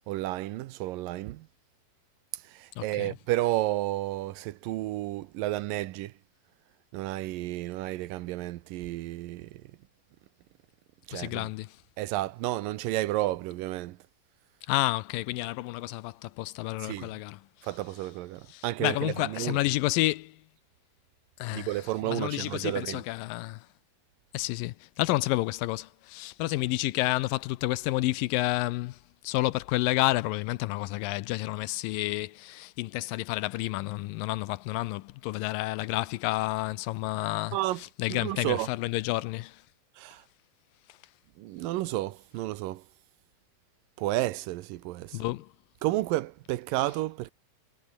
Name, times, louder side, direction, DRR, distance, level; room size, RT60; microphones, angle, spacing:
voice 1, 0.1-1.5 2.3-6.1 6.9-9.6 11.1-11.5 12.0-14.0 16.8-17.1 17.6-19.6 21.5-23.0 37.5-37.8 38.1-38.7 40.0-40.2 41.4-42.8 44.0-45.2 45.8-47.3, right 16 dB, 85° right, 2.5 m, -31 dB
voice 2, 2.8-3.2 11.1-11.8 14.7-17.4 18.5-20.4 21.4-23.7 24.3-29.0 29.2-39.6 45.1-45.5, left 18 dB, 85° left, 2.4 m, -30 dB
omnidirectional pair, 3.9 m